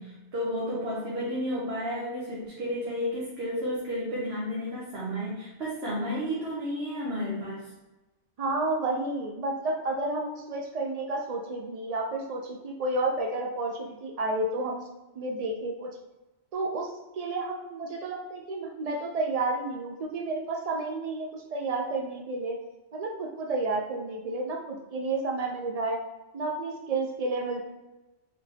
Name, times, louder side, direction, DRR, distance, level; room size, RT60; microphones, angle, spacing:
voice 1, 0.0-7.7, equal, 60° right, -5 dB, 1.1 m, -32 dB
voice 2, 8.4-14.9 15.2-15.9 16.5-22.6 22.9-26.0 26.3-27.6, right 2 dB, 85° right, 1 dB, 0.3 m, -31 dB
3.9 x 2.7 x 3.3 m, 1.1 s
omnidirectional pair, 1.2 m